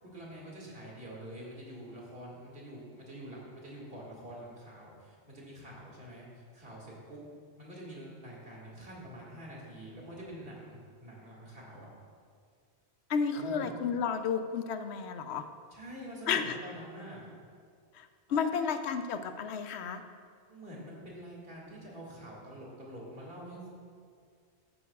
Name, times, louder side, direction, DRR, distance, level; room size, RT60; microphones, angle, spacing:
voice 1, 0.0-7.2 7.6-11.9 13.3-13.7 15.7-17.2 18.3-18.6 20.5-23.7, right 1 dB, 60° right, -4 dB, 2.4 m, -46 dB
voice 2, 13.1-15.4 16.3-16.4 18.0-20.0, left 6 dB, 80° left, 9 dB, 0.8 m, -32 dB
13.5 x 9.3 x 2.4 m, 2.1 s
omnidirectional pair, 1.1 m